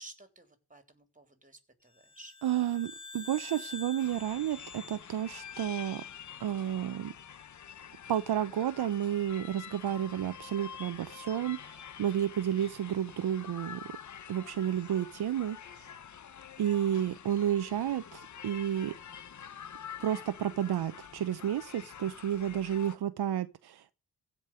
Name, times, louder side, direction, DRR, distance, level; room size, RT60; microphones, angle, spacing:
voice 1, 0.0-2.4 12.4-12.5, right 1 dB, 20° right, 3.5 m, -53 dB
sound 1, 2.0-6.5, left 4 dB, 15° left, 1.8 m, -48 dB
voice 2, 2.4-6.0 6.4-7.1 8.1-13.8 14.3-15.9 16.6-19.0 20.0-23.9, right 10 dB, 75° right, 0.8 m, -31 dB
sound 2, 4.0-23.0, left 8 dB, 50° left, 0.8 m, -47 dB
16.0 x 5.4 x 7.9 m
cardioid pair, 55°, 39 cm